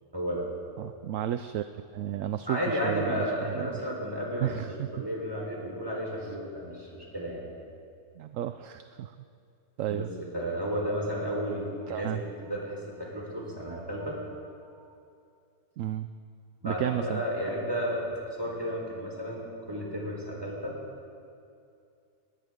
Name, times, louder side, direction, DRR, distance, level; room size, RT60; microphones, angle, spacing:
voice 1, 0.1-0.5 2.5-4.5 4.9-7.5 9.9-12.1 12.4-14.2 14.8-14.9 16.6-19.4 19.7-20.7, equal, 15° right, -3 dB, 4.0 m, -33 dB
voice 2, 0.8-3.7 4.4-4.9 8.2-9.1 9.8-10.1 11.9-12.2 15.8-16.1 16.6-17.2, right 11 dB, 70° right, 10 dB, 0.8 m, -32 dB
20.5 x 18.5 x 3.7 m, 2.5 s
omnidirectional pair, 1.6 m